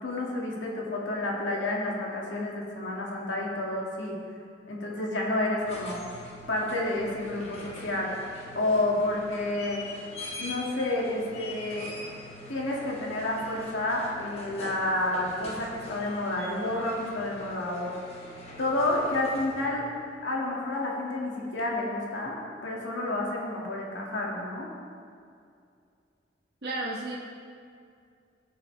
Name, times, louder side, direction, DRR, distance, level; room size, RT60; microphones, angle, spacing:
voice 1, 0.0-4.2 4.7-6.0 6.5-8.2 8.6-9.8 10.4-11.9 12.5-17.9 18.6-19.9 20.2-24.7, left 2 dB, 85° left, -3 dB, 2.0 m, -30 dB
sound 1, 5.5-19.8 21.6-21.7, left 1 dB, 35° left, 1.3 m, -44 dB
voice 2, 26.6-27.2, right 2 dB, 55° right, -4 dB, 1.1 m, -32 dB
16.0 x 7.0 x 3.3 m, 2.4 s
head